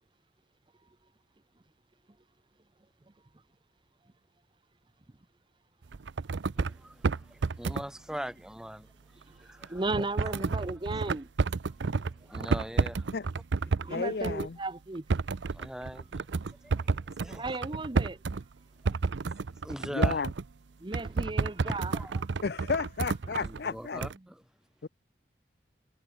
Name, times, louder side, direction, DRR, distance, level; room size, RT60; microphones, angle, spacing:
sound 1, 5.9-6.8 7.0-7.9 9.6-13.9 14.2-14.5 14.9-18.4 18.8-20.5 20.9-23.6 24.0-24.1, right 4 dB, 75° right, 0.6 m, -31 dB
voice 1, 6.6-10.5 10.9-11.0 11.7-13.1 15.5-16.3 16.6-17.5 18.8-19.1 19.4-20.2 21.6-22.2 23.4-24.4, equal, 5° right, 3.2 m, -42 dB
voice 2, 9.3-11.3 13.7-15.0 17.3-18.4 20.8-21.9, right 2 dB, 25° right, 0.7 m, -35 dB
voice 3, 13.9-14.6 19.9-20.3 22.4-24.0 24.8-24.9, left 4 dB, 55° left, 0.5 m, -32 dB
head